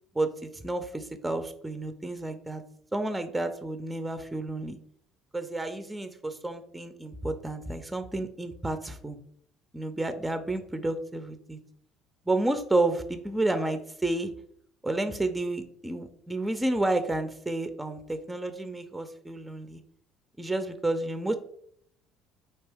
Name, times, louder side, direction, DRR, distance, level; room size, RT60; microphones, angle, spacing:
voice 1, 0.1-2.6 2.9-4.8 5.3-9.2 9.7-11.6 12.3-14.3 14.8-19.8 20.4-21.3, right 2 dB, 10° right, 9 dB, 0.4 m, -30 dB
4.4 x 2.8 x 3.4 m, 0.65 s
cardioid pair, 100°, 0 cm